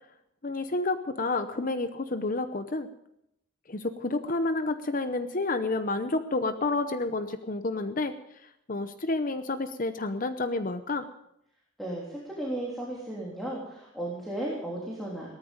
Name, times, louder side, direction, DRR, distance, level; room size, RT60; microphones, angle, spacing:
voice 1, 0.4-2.9 3.7-8.2 8.7-11.1, left 2 dB, 40° left, 9 dB, 0.8 m, -30 dB
voice 2, 11.8-15.4, right 1 dB, ahead, -5 dB, 3.3 m, -35 dB
18.0 x 14.0 x 5.2 m, 0.79 s
head